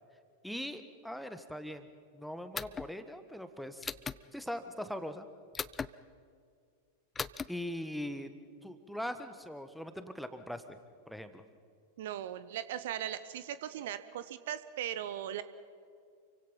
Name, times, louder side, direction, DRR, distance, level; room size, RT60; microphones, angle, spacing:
voice 1, 0.4-1.9 2.1-3.9 4.3-5.3 7.5-8.3 8.6-10.6 11.1-11.4, equal, ahead, 9 dB, 1.5 m, -41 dB
sound 1, 2.5-2.9 3.8-4.2 5.5-5.9 7.2-7.5, left 5 dB, 15° left, 0.6 m, -37 dB
voice 2, 12.0-15.4, right 11 dB, 55° right, 14 dB, 0.9 m, -38 dB
29.0 x 24.5 x 5.5 m, 2.2 s
figure-of-eight pair, 90°, 0 cm